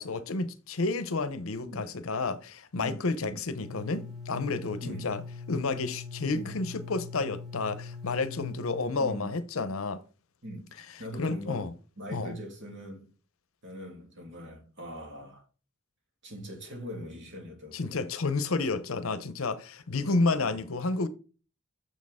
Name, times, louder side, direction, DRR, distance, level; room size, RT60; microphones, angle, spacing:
voice 1, 0.0-5.2 5.5-10.0 11.2-11.7 12.1-12.4 17.7-21.1, left 3 dB, 75° left, 0.8 m, -30 dB
voice 2, 2.8-3.4 4.8-5.1 6.3-6.6 9.0-9.4 10.4-11.7 12.0-13.1 13.6-15.4 16.2-18.0 18.6-18.7 20.0-20.6, equal, 60° right, 2.8 m, -42 dB
sound 1, 3.6-8.9, left 4 dB, ahead, 1.3 m, -42 dB
6.9 x 6.4 x 3.6 m
head